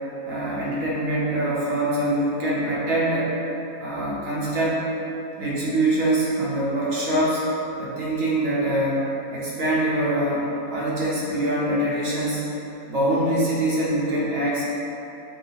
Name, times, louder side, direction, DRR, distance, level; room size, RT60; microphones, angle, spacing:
voice 1, 0.2-3.3 3.8-4.8 5.4-7.5 7.8-9.0 9.3-12.4 12.9-14.6, right 1 dB, 60° right, -8 dB, 1.1 m, -24 dB
5.4 x 2.1 x 2.8 m, 3.0 s
omnidirectional pair, 1.7 m